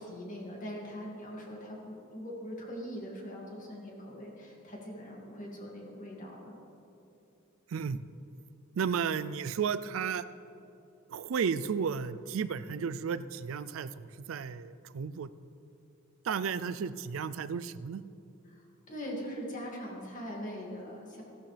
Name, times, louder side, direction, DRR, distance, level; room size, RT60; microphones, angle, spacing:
voice 1, 0.0-6.5 18.5-21.2, equal, 40° left, -2 dB, 2.2 m, -42 dB
voice 2, 8.8-10.2 11.1-15.3 16.2-18.0, right 6 dB, 75° right, 14 dB, 0.4 m, -33 dB
15.5 x 11.5 x 3.4 m, 2.8 s
head